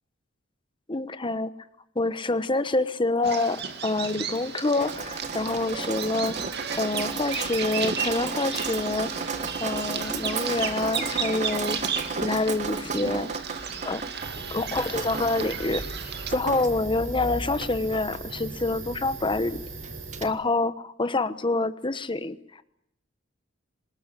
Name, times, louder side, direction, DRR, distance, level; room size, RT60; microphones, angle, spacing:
voice 1, 0.9-1.5 1.9-6.4 6.8-9.1 9.6-11.8 12.2-13.3 13.8-14.0 14.5-19.6 20.2-22.6, left 2 dB, 25° left, 13 dB, 1.1 m, -27 dB
Bird vocalization bird call bird song, 3.2-16.3, right 6 dB, 55° right, 2.3 m, -34 dB
Drip, 4.8-20.2, right 4 dB, 40° right, 1.5 m, -35 dB
sound 1, 14.2-20.3, right 2 dB, 75° right, 7.5 m, -38 dB
25.5 x 20.0 x 9.9 m, 0.79 s
head